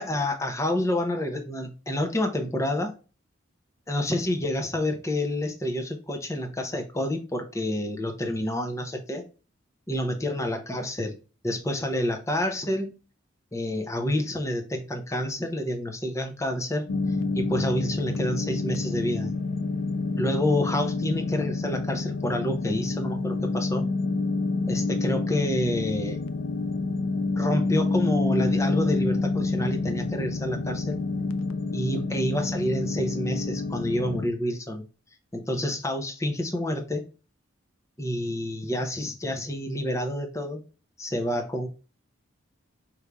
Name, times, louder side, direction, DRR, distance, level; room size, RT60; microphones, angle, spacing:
voice 1, 0.0-2.9 3.9-9.2 9.9-11.1 11.4-13.0 13.5-16.8 17.3-19.3 20.2-23.9 24.7-26.2 27.3-31.0 31.7-34.8 35.3-37.0 38.0-40.6 41.0-41.7, left 1 dB, 15° left, 0.7 m, -28 dB
sound 1, 16.9-34.3, left 3 dB, 75° left, 0.4 m, -28 dB
4.6 x 2.7 x 3.4 m
head